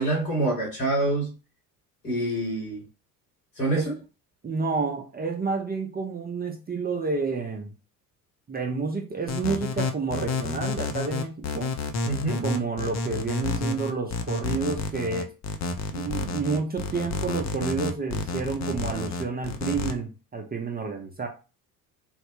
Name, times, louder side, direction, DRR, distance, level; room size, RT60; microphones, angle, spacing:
voice 1, 0.0-1.3 2.0-2.8 3.6-3.9 12.1-12.5, right 2 dB, 90° left, 1.7 m, -26 dB
voice 2, 4.4-7.7 8.5-11.7 12.4-15.3 15.9-21.3, right 4 dB, 20° right, 0.6 m, -30 dB
sound 1, 9.3-19.9, left 3 dB, 35° left, 0.6 m, -30 dB
3.2 x 2.1 x 3.0 m
hypercardioid pair, 60°, 45 cm